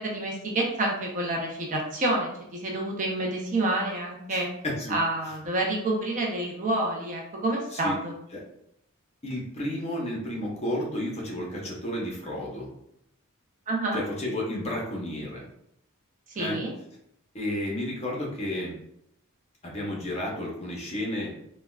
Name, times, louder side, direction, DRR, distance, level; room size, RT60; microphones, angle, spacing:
voice 1, 0.0-4.5 4.9-8.1 13.7-14.0 16.4-16.7, right 2 dB, 35° right, -1 dB, 0.5 m, -28 dB
voice 2, 4.3-5.0 7.7-8.0 8.3-8.4 9.2-12.7 13.9-15.4 16.3-16.6 17.3-18.7 19.6-21.3, left 1 dB, 30° left, -3 dB, 0.7 m, -32 dB
3.5 x 2.1 x 2.2 m, 0.77 s
head